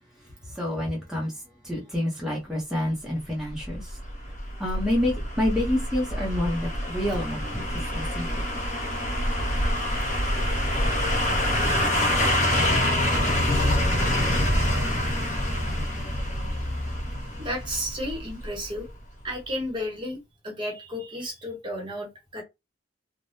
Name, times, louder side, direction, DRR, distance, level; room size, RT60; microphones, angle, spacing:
voice 1, 0.1-4.0 4.6-8.6, left 1 dB, 5° right, 0.8 m, -29 dB
sound 1, 3.6-18.6 18.9-19.0, left 1 dB, 40° left, 1.4 m, -26 dB
voice 2, 17.4-18.9 19.2-22.4, equal, 25° right, 1.0 m, -33 dB
3.3 x 2.2 x 2.7 m
head